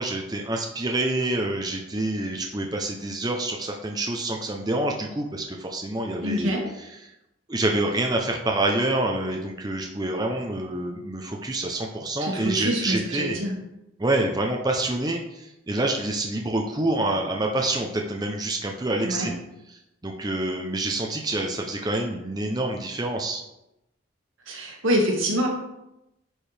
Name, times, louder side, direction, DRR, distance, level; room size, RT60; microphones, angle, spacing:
voice 1, 0.0-6.5 6.8-7.1 7.5-13.4 14.0-19.3 19.7-23.4, right 2 dB, 20° right, 2 dB, 0.6 m, -27 dB
voice 2, 6.2-6.6 12.2-13.5 19.0-19.3 24.5-25.5, equal, 80° right, 0 dB, 1.8 m, -25 dB
10.0 x 4.6 x 3.4 m, 0.89 s
head